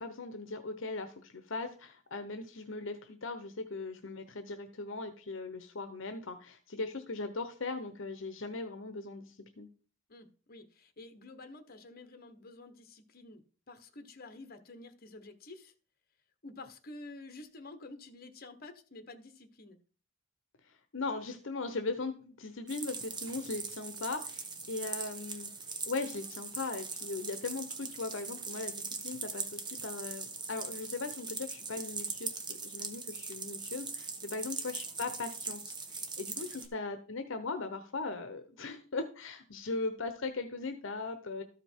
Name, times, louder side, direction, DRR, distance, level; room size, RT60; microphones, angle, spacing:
voice 1, 0.0-9.7 20.7-25.5 25.9-41.4, left 3 dB, 65° left, 8 dB, 0.9 m, -39 dB
voice 2, 10.1-15.7 16.4-19.8 34.4-34.6 36.3-36.6, left 2 dB, 45° left, 8 dB, 1.1 m, -50 dB
sound 1, 22.7-36.7, right 4 dB, 20° right, 1.1 m, -41 dB
13.0 x 5.2 x 4.5 m, 0.40 s
head